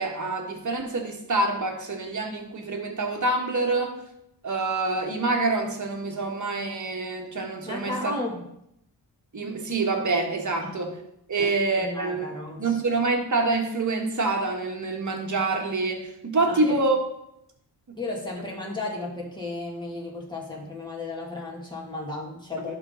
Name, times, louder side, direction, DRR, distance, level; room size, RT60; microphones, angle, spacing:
voice 1, 0.0-4.0 4.4-8.1 9.3-10.9 11.3-12.2 12.6-17.0 22.7-22.8, right 3 dB, 40° right, 2 dB, 1.6 m, -26 dB
voice 2, 7.6-8.4 10.6-10.7 11.4-12.8 16.5-16.8 18.0-22.8, left 2 dB, 10° left, -4 dB, 2.4 m, -34 dB
11.5 x 3.8 x 3.9 m, 0.78 s
cardioid pair, 80°, 43 cm